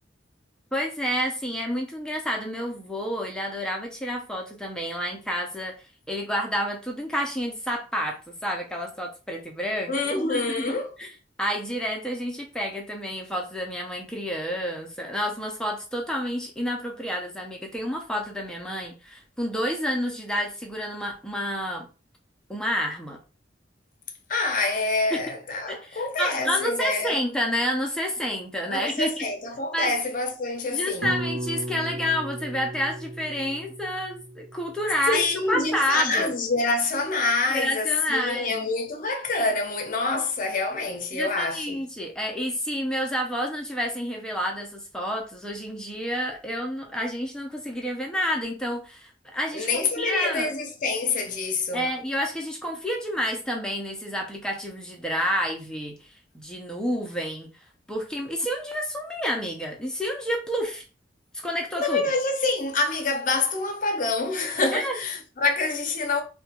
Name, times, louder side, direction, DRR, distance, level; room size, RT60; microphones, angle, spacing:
voice 1, 0.7-5.7 6.1-10.7 11.0-11.1 11.4-21.9 22.5-23.2 25.1-25.2 25.7-29.3 29.7-29.9 30.7-36.3 37.5-38.7 41.1-50.5 51.7-56.0 56.3-57.5 57.9-60.8 61.3-62.0 64.7-65.0, equal, 5° left, 0.6 m, -29 dB
voice 2, 9.9-10.9 24.3-27.2 28.7-31.2 35.1-41.8 49.5-51.9 61.8-66.2, left 3 dB, 45° left, 0.6 m, -26 dB
sound 1, 31.0-35.3, right 1 dB, 60° right, 0.5 m, -35 dB
2.9 x 2.2 x 2.8 m
head